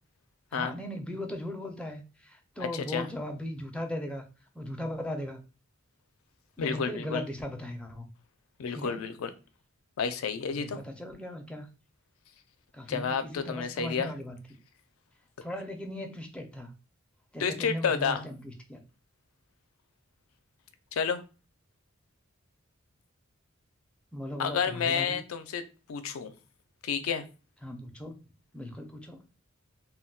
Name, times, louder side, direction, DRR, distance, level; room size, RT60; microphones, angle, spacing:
voice 1, 0.5-4.2 4.5-5.4 6.6-8.1 8.7-9.0 10.5-11.7 12.7-14.4 15.4-16.7 17.3-18.8 24.1-25.2 27.6-28.2 28.5-29.2, left 1 dB, 5° left, 3 dB, 0.4 m, -38 dB
voice 2, 2.7-3.1 6.6-7.2 8.6-9.3 10.0-10.8 12.9-14.1 17.4-18.2 20.9-21.2 24.4-25.6 25.9-26.3 26.8-27.2, left 6 dB, 85° left, 9 dB, 0.4 m, -30 dB
2.2 x 2.1 x 3.7 m, 0.32 s
head